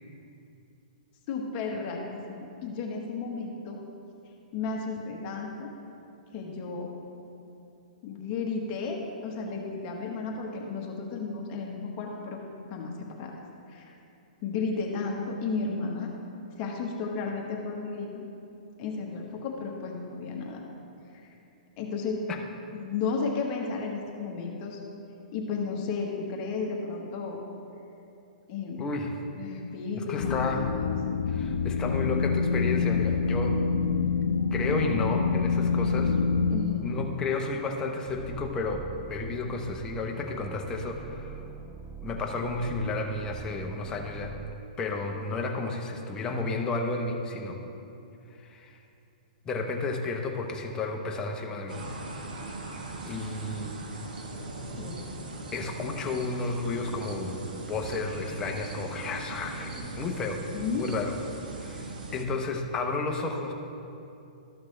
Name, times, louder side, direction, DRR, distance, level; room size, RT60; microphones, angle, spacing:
voice 1, 1.3-3.8 4.5-5.7 6.3-6.9 8.0-12.4 12.7-13.3 13.7-13.9 14.4-16.1 16.6-18.2 18.8-20.6 21.1-21.3 21.8-22.2 22.7-24.8 25.3-27.4 28.5-28.9 29.3-30.9 36.5-36.9 54.8-55.0 60.5-60.9 62.1-62.2, left 4 dB, 35° left, -1 dB, 1.2 m, -33 dB
voice 2, 28.8-29.2 29.9-30.7 31.3-33.6 34.5-36.2 36.8-38.8 39.1-41.4 42.0-44.3 44.8-47.6 48.4-48.8 49.4-51.8 53.1-53.7 55.5-60.4 60.7-61.1 61.5-63.5, left 3 dB, 15° left, 2 dB, 0.8 m, -32 dB
sound 1, 30.2-36.6, left 5 dB, 70° left, 0.6 m, -26 dB
sound 2, 38.1-44.6, right 6 dB, 5° right, 0.4 m, -43 dB
sound 3, 51.7-62.2, right 3 dB, 80° right, 1.1 m, -39 dB
13.0 x 5.9 x 3.2 m, 2.8 s
hypercardioid pair, 150°, 5 cm